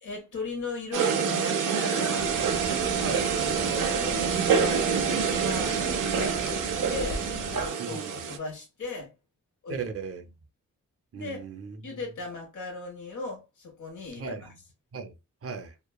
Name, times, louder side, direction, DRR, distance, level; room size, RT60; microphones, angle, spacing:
voice 1, 0.0-2.3 3.0-7.2 7.5-9.1 9.6-9.9 11.1-11.4 11.8-14.5, left 3 dB, 75° left, 1.3 m, -37 dB
sound 1, 0.9-8.4, right 6 dB, 90° right, 0.5 m, -27 dB
sound 2, 2.2-7.7, left 2 dB, 50° left, 0.6 m, -40 dB
voice 2, 7.8-8.1 9.7-10.3 11.1-11.8 14.2-14.4 14.9-15.1 15.4-15.7, right 5 dB, 50° right, 0.6 m, -36 dB
3.0 x 2.2 x 2.2 m
cardioid pair, 65°, 31 cm